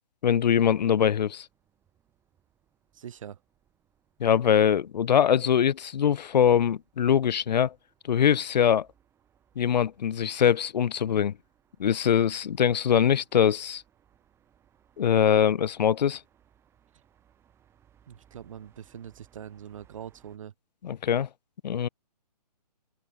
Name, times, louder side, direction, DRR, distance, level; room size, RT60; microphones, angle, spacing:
voice 1, 0.2-1.5 4.2-7.7 8.0-8.9 9.6-11.3 11.8-13.8 15.0-16.2 20.8-21.3 21.6-21.9, left 8 dB, 85° left, 0.5 m, -23 dB
sound 1, 1.3-20.4, right 9 dB, 10° right, 7.7 m, -66 dB
voice 2, 2.9-3.4 18.1-20.5, right 9 dB, 50° right, 1.4 m, -43 dB
open air
hypercardioid pair, 160°, 21 cm